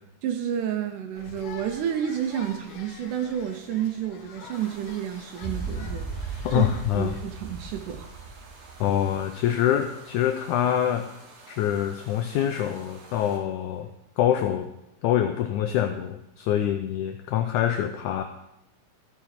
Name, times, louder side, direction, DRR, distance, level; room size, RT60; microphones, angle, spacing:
voice 1, 0.2-6.7 6.9-8.1, right 9 dB, 75° right, 6 dB, 1.9 m, -30 dB
sound 1, 1.1-7.2, left 5 dB, 65° left, 2.3 m, -46 dB
sound 2, 4.5-13.4, right 3 dB, 50° right, 1.9 m, -50 dB
sound 3, 5.4-9.7, right 4 dB, 10° left, 2.9 m, -36 dB
voice 2, 6.4-7.1 8.8-11.1 11.5-13.9 14.2-14.7 15.0-18.2, left 10 dB, 85° left, 6 dB, 1.7 m, -25 dB
13.0 x 5.8 x 5.9 m, 0.85 s
omnidirectional pair, 4.2 m